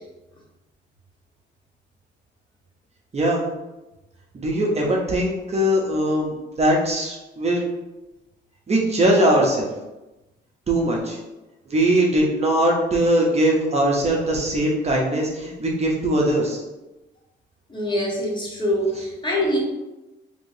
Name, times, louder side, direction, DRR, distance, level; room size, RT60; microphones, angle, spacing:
voice 1, 3.1-3.4 4.4-7.7 8.7-9.7 10.7-11.2 11.7-16.6, right 1 dB, 35° right, -2 dB, 0.7 m, -21 dB
voice 2, 17.7-19.6, equal, 25° left, -2 dB, 0.9 m, -24 dB
3.1 x 2.9 x 2.7 m, 1.0 s
cardioid pair, 90°, 20 cm